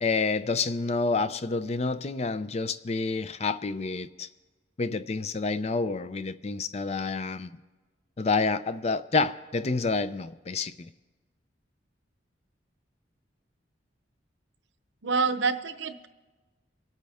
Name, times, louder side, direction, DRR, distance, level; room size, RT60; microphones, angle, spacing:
voice 1, 0.0-4.3 4.8-7.5 8.2-10.9, left 4 dB, 35° left, 0.4 m, -28 dB
voice 2, 15.0-16.1, right 4 dB, 75° right, 0.8 m, -27 dB
25.0 x 9.0 x 3.5 m
head